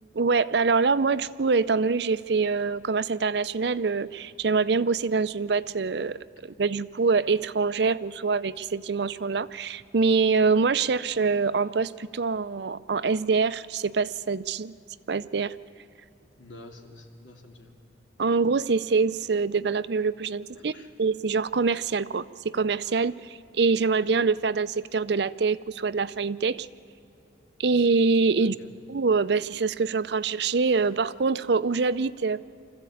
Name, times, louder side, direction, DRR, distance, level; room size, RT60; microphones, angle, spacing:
voice 1, 0.1-14.7 15.1-15.6 18.2-20.7 21.0-26.7 27.6-28.5 28.9-32.4, right 4 dB, 65° right, 15 dB, 0.5 m, -25 dB
voice 2, 16.4-17.7 20.5-20.9 28.4-28.7, left 2 dB, 85° left, 2 dB, 2.6 m, -48 dB
24.5 x 15.0 x 8.5 m, 2.7 s
head